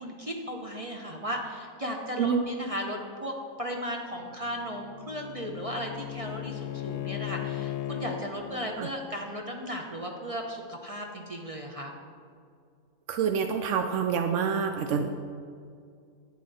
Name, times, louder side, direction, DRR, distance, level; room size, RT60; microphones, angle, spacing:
voice 1, 0.0-11.9, equal, 35° right, 1 dB, 0.6 m, -36 dB
Bowed string instrument, 4.2-8.3, left 12 dB, 80° left, 1.1 m, -37 dB
voice 2, 13.1-15.1, right 6 dB, 70° right, 7 dB, 0.7 m, -27 dB
11.5 x 8.4 x 4.2 m, 2.3 s
omnidirectional pair, 1.8 m